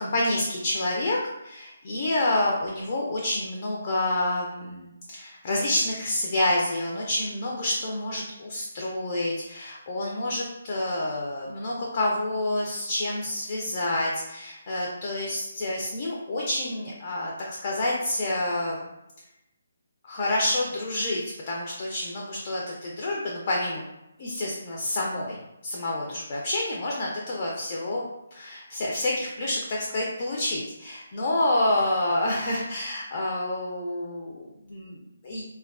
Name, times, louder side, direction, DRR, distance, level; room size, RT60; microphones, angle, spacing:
voice 1, 0.0-18.8 20.0-23.8 24.2-28.0 28.3-35.4, left 1 dB, 40° left, -2 dB, 0.4 m, -28 dB
3.3 x 2.2 x 2.3 m, 0.90 s
figure-of-eight pair, 145°, 0 cm